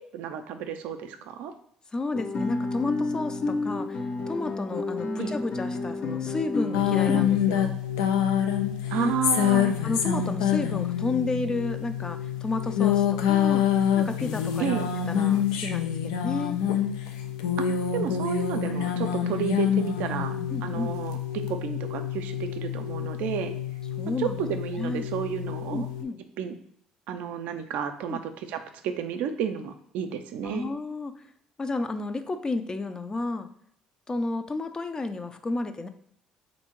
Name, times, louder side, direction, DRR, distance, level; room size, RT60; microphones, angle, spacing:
voice 1, 0.0-1.5 5.2-5.3 8.9-9.7 14.6-14.9 17.6-21.2 21.5-23.5 24.2-25.9 26.4-26.6 27.1-30.7, right 8 dB, 70° right, 8 dB, 0.4 m, -32 dB
voice 2, 1.9-7.8 8.9-9.5 9.8-13.7 13.9-16.6 20.5-20.9 24.0-24.4 24.8-25.1 25.7-26.2 28.1-28.2 30.4-31.2 31.6-33.5 34.1-35.9, left 3 dB, 25° left, 9 dB, 0.4 m, -32 dB
Guitar, 2.1-7.3, left 3 dB, 60° left, 0.8 m, -30 dB
sound 1, 6.7-26.0, left 9 dB, 85° left, 0.4 m, -27 dB
3.6 x 2.6 x 4.5 m, 0.66 s
hypercardioid pair, 65°, 3 cm